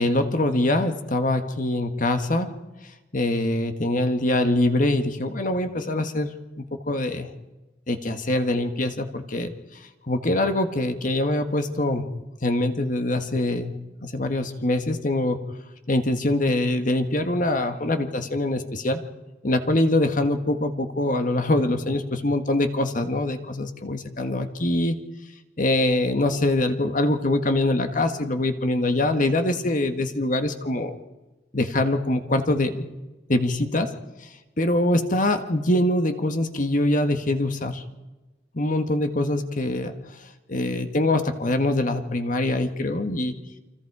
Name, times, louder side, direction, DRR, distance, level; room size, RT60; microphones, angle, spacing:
voice 1, 0.0-2.5 3.1-6.3 6.9-7.3 7.9-9.5 10.1-12.0 12.4-13.7 14.0-15.4 15.9-19.0 19.4-25.0 25.6-31.0 31.5-32.9 33.3-33.9 34.6-37.8 38.5-39.9 40.5-43.3, left 1 dB, 45° left, 7 dB, 1.6 m, -23 dB
29.5 x 24.5 x 4.9 m, 1.1 s
head